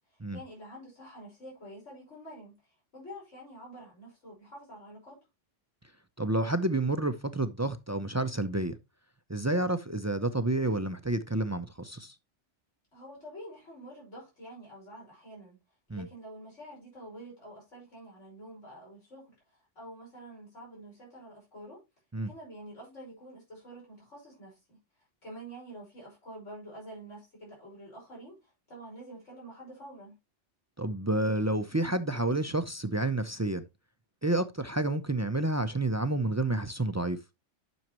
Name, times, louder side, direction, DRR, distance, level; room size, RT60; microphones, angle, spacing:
voice 1, 0.1-5.2 12.9-15.6 15.9-21.8 22.2-24.8 25.2-30.2, right 1 dB, 85° left, 6.0 m, -48 dB
voice 2, 6.2-8.7 9.3-12.1 15.9-16.1 22.1-22.3 30.8-33.7 34.2-37.2, right 2 dB, 25° right, 0.3 m, -29 dB
10.5 x 6.3 x 2.9 m
omnidirectional pair, 1.2 m